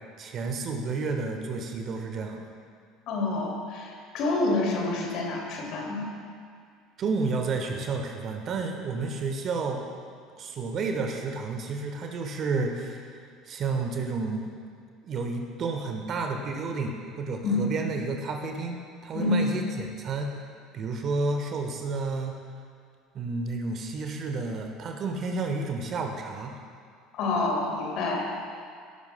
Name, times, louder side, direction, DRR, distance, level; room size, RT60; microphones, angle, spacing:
voice 1, 0.2-2.4 7.0-9.8 10.4-13.2 13.4-14.5 15.0-18.8 19.0-20.3 20.7-22.4 23.1-26.5, right 3 dB, 40° right, 4 dB, 1.2 m, -31 dB
voice 2, 3.1-6.1 17.4-17.7 19.1-19.5 27.1-28.3, left 2 dB, 50° left, -1 dB, 2.3 m, -27 dB
18.0 x 12.0 x 2.2 m, 2.2 s
figure-of-eight pair, 65°, 0 cm